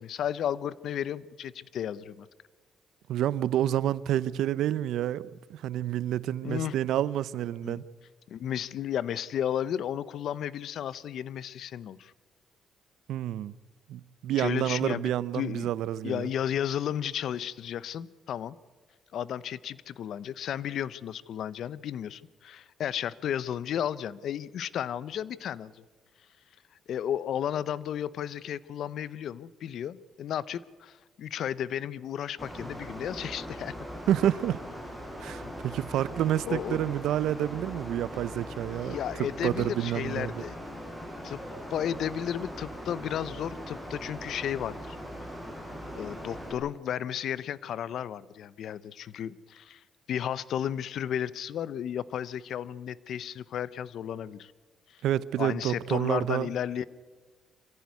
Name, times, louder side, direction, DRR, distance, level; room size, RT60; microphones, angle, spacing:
voice 1, 0.0-2.3 6.4-6.7 7.6-7.8 8.3-12.1 14.4-15.7 16.0-18.6 19.1-25.8 26.9-33.7 35.4-35.5 36.5-36.8 38.7-40.6 41.2-41.4 41.7-45.0 45.9-49.8 50.1-54.5 55.4-56.8, left 9 dB, 70° left, 0.7 m, -33 dB
voice 2, 3.1-7.9 13.1-13.5 13.9-16.3 34.1-34.6 35.2-40.4 55.0-56.5, right 12 dB, 80° right, 0.6 m, -29 dB
Mechanical fan, 32.4-46.5, equal, 10° left, 7.7 m, -40 dB
24.5 x 15.0 x 9.6 m
cardioid pair, 90°, 0 cm